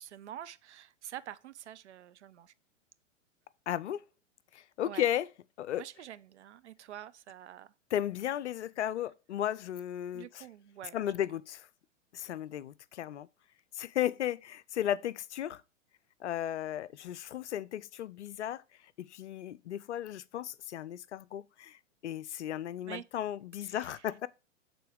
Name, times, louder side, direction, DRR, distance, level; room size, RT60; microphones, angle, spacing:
voice 1, 0.0-2.5 4.8-5.1 5.8-7.7 10.1-11.4 22.8-23.1 23.6-24.1, right 11 dB, 65° right, 0.6 m, -47 dB
voice 2, 3.7-4.0 4.8-5.3 5.6-5.8 7.9-10.3 10.9-11.6 12.1-13.3 13.8-15.6 16.2-18.6 19.0-21.8 22.0-24.3, left 11 dB, 65° left, 0.5 m, -34 dB
6.8 x 3.8 x 4.8 m
figure-of-eight pair, 100°, 38 cm